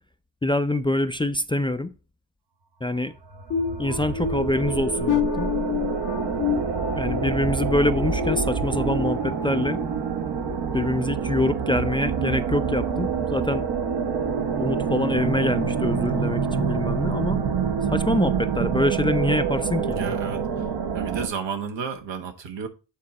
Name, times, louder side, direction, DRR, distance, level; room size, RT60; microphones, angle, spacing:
voice 1, 0.4-1.9 2.8-3.1 3.8-5.5 6.9-9.8 10.7-13.7 14.6-17.4 17.9-20.2, left 1 dB, 10° left, 0.4 m, -25 dB
sound 1, 3.2-21.3, right 6 dB, 65° right, 1.0 m, -26 dB
sound 2, 3.5-9.2 9.6-9.9 10.4-10.6, left 8 dB, 45° left, 0.7 m, -29 dB
voice 2, 19.8-20.5 20.9-22.7, right 6 dB, 80° right, 1.2 m, -32 dB
8.6 x 3.8 x 4.1 m
cardioid pair, 75°, 43 cm